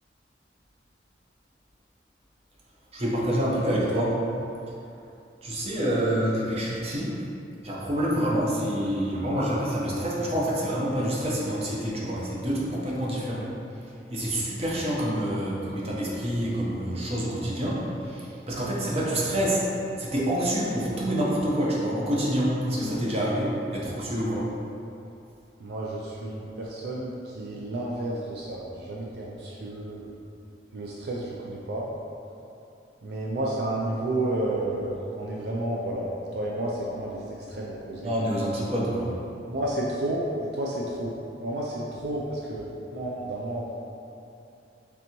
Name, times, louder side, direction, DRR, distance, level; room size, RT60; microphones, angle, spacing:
voice 1, 2.9-4.2 5.4-7.1 7.6-13.4 14.1-19.6 20.0-24.5 38.0-39.1, equal, 35° right, -5 dB, 0.7 m, -27 dB
voice 2, 25.6-30.1 30.7-31.9 33.0-38.1 39.5-41.2 41.4-43.6, right 1 dB, 65° right, -4 dB, 0.4 m, -31 dB
4.0 x 3.4 x 2.9 m, 2.7 s
head